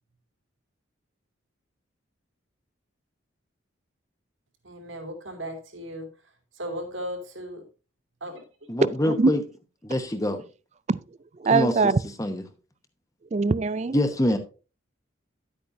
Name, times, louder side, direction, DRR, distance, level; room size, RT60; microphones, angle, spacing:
voice 1, 4.6-6.1 6.5-7.6 8.2-8.7, equal, 75° right, 2.7 m, -36 dB
voice 2, 8.7-9.4 9.8-10.4 11.5-11.9 12.2-12.4 13.9-14.4, left 1 dB, 15° left, 0.9 m, -25 dB
voice 3, 11.4-12.0 13.3-14.0, right 4 dB, 35° right, 0.4 m, -22 dB
11.0 x 8.7 x 2.7 m
head